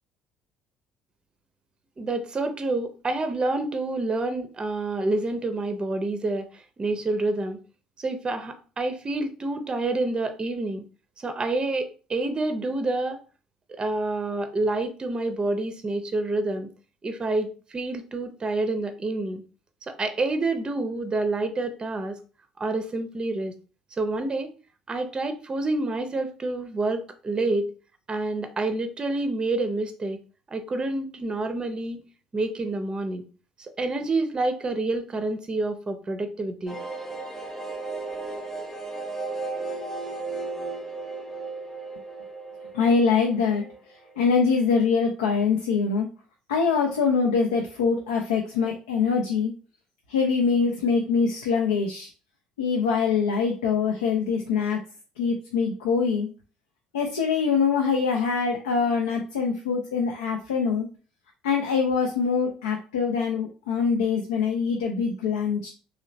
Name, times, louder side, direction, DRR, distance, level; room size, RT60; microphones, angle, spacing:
voice 1, 2.0-6.5 6.8-7.6 8.0-10.8 11.2-13.2 13.7-16.7 17.0-19.4 19.8-22.2 22.6-23.5 24.0-24.5 24.9-27.7 28.1-30.2 30.5-32.0 32.3-33.2 33.6-36.8, right 2 dB, 30° right, 8 dB, 0.5 m, -28 dB
sound 1, 36.7-44.1 44.4-44.5 44.8-44.9, right 3 dB, 10° left, 0.9 m, -35 dB
voice 2, 42.7-43.7 44.2-46.1 46.5-49.5 50.1-52.1 52.6-54.8 55.2-56.3 56.9-60.9 61.4-65.7, left 5 dB, 75° left, 0 dB, 0.5 m, -24 dB
3.1 x 2.8 x 2.6 m, 0.36 s
figure-of-eight pair, 55°, 3 cm